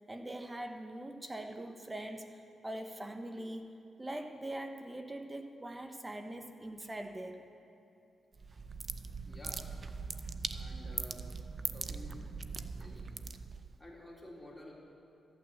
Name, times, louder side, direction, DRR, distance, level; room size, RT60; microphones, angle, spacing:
voice 1, 0.1-3.7 4.0-7.4, right 1 dB, 20° right, 6 dB, 1.1 m, -42 dB
sound 1, 8.3-13.8, right 4 dB, 45° right, 0.6 m, -41 dB
voice 2, 9.2-9.6 10.5-11.3 11.7-12.2 12.7-13.0 13.8-14.7, left 1 dB, 10° left, -4 dB, 3.8 m, -51 dB
13.5 x 9.1 x 7.7 m, 2.7 s
cardioid pair, 75°, 0 cm